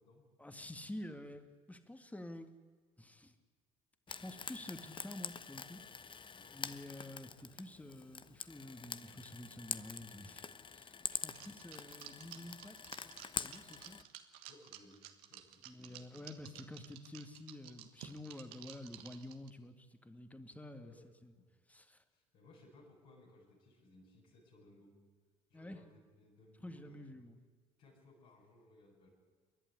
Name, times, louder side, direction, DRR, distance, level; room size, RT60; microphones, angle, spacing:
voice 1, 0.4-2.5 3.0-3.4 4.1-6.2 6.5-14.0 15.7-20.9 21.2-21.3 21.7-22.0 25.5-25.8 26.6-27.4, left 1 dB, 10° left, 8 dB, 2.1 m, -50 dB
Frying (food), 4.1-14.0, left 6 dB, 30° left, 1.0 m, -46 dB
sound 1, 11.3-19.5, right 13 dB, 65° right, 1.5 m, -53 dB
voice 2, 14.5-15.0 15.3-16.7 20.7-21.0 21.3-21.5 22.1-24.9 25.5-27.1 27.8-29.1, left 2 dB, 60° left, -5 dB, 7.6 m, -62 dB
29.5 x 11.0 x 9.9 m, 1.5 s
figure-of-eight pair, 60°, 17 cm